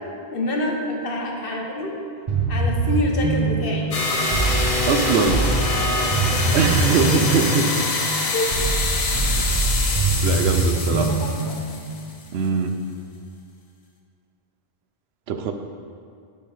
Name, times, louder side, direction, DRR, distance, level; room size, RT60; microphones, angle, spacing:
voice 1, 0.3-1.9 2.5-3.9 5.9-6.3 8.3-8.5 10.7-11.6, left 1 dB, 65° left, 0 dB, 1.2 m, -27 dB
sound 1, 2.3-12.1, right 3 dB, 45° right, 1.0 m, -24 dB
sound 2, 3.9-12.2, left 3 dB, 40° left, 0.7 m, -25 dB
voice 2, 4.9-5.5 6.0-6.1 6.5-7.9 9.4-9.6 10.2-11.1 12.3-12.8 15.3-15.5, right 5 dB, 80° right, 7 dB, 0.8 m, -22 dB
10.0 x 5.6 x 3.3 m, 2.3 s
omnidirectional pair, 1.0 m